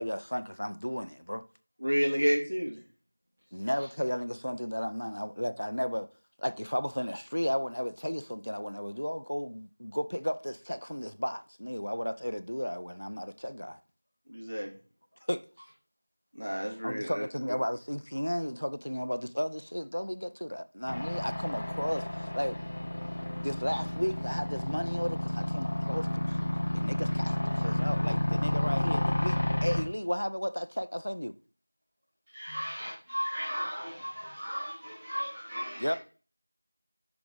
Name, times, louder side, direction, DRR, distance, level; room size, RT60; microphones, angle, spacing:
voice 1, 0.0-1.4 3.5-6.1 6.4-13.8 15.3-15.4 16.8-22.6 23.4-26.4 26.7-31.4 35.8-35.9, equal, 70° left, 0.5 m, -34 dB
voice 2, 1.8-2.8 14.3-14.7 16.3-17.2, equal, 85° right, 2.4 m, -29 dB
sound 1, 20.9-29.8, left 1 dB, 15° left, 0.3 m, -31 dB
voice 3, 32.3-36.0, equal, 10° right, 1.3 m, -36 dB
5.7 x 4.2 x 4.7 m
figure-of-eight pair, 180°, 0 cm